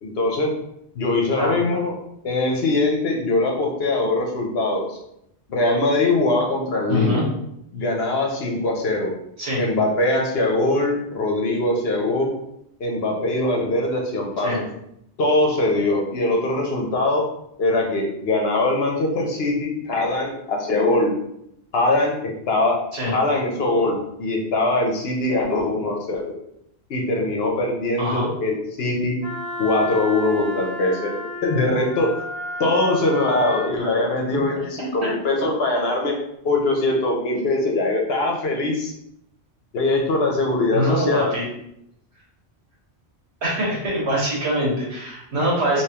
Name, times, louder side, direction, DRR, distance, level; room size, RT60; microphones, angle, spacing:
voice 1, 0.0-0.5 0.9-1.9 2.2-5.0 5.5-7.2 7.7-9.1 9.6-12.3 12.8-14.5 15.2-17.2 17.6-21.1 21.7-22.8 23.1-26.2 26.9-29.2 29.6-32.2 32.6-36.2 36.4-38.9 39.7-41.3, left 2 dB, 65° left, 0 dB, 0.9 m, -22 dB
voice 2, 6.9-7.2 9.4-9.6 14.4-14.6 22.9-23.1 28.0-28.3 35.0-35.1 40.7-41.5 43.4-45.8, equal, 75° right, -4 dB, 1.6 m, -23 dB
Wind instrument woodwind instrument, 29.2-33.8, left 1 dB, 40° left, 0.5 m, -33 dB
3.4 x 3.0 x 2.9 m, 0.78 s
omnidirectional pair, 1.1 m